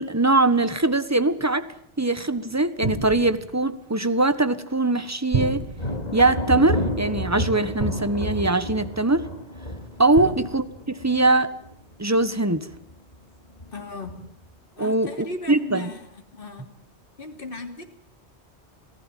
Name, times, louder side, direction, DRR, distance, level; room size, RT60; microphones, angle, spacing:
voice 1, 0.0-1.7 2.0-5.6 6.1-9.3 10.0-11.5 12.0-12.7 14.8-15.1 15.5-15.8, right 2 dB, 15° right, 13 dB, 1.4 m, -22 dB
sound 1, 2.8-3.7 5.3-6.1 7.8-8.5 10.1-10.8, right 4 dB, 35° right, 1.4 m, -30 dB
Thunder, 5.7-12.2 12.6-13.1 13.6-14.4, left 1 dB, 35° left, 2.8 m, -31 dB
voice 2, 13.7-14.2 14.7-16.7 17.2-17.8, left 2 dB, 50° left, 4 dB, 3.2 m, -37 dB
27.5 x 17.0 x 9.2 m, 0.66 s
omnidirectional pair, 1.2 m